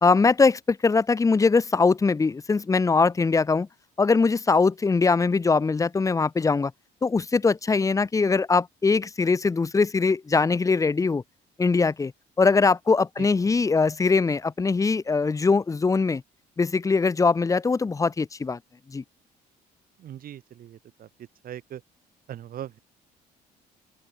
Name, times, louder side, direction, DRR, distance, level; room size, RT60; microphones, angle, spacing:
voice 1, 0.0-3.7 4.0-6.7 7.0-11.2 11.6-12.1 12.4-16.2 16.6-18.6 18.9-19.0, left 4 dB, 20° left, 0.9 m, -22 dB
voice 2, 20.0-21.1 21.4-21.8 22.3-22.8, right 11 dB, 60° right, 7.4 m, -39 dB
open air
cardioid pair, 110°, 17 cm